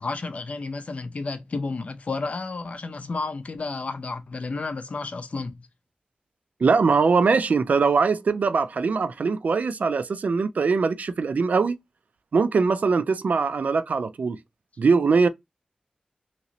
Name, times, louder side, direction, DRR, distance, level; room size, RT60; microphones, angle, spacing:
voice 1, 0.0-5.6, left 3 dB, 60° left, 0.5 m, -31 dB
voice 2, 6.6-11.8 12.3-14.4 14.8-15.3, right 4 dB, 85° right, 0.3 m, -22 dB
2.9 x 2.9 x 2.7 m
wide cardioid pair, 95°, 3 cm